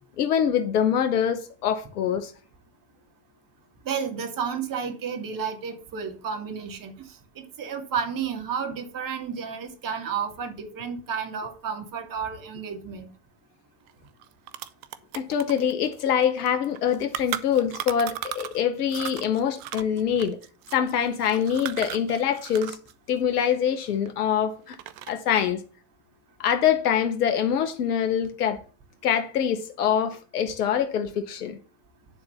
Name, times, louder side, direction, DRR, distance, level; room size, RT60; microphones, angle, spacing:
voice 1, 0.2-2.3 15.1-20.4 20.7-22.8 23.1-24.8 25.1-25.6 26.4-28.6 29.0-31.6, left 8 dB, 80° left, 1.0 m, -24 dB
voice 2, 3.8-6.9 7.4-13.1, right 6 dB, 45° right, 2.5 m, -31 dB
sound 1, 13.9-14.0 14.2-18.6 18.9-22.9 23.2-24.3 24.7-25.3, right 12 dB, 65° right, 1.0 m, -36 dB
10.5 x 4.0 x 6.9 m
hypercardioid pair, 75°, 45 cm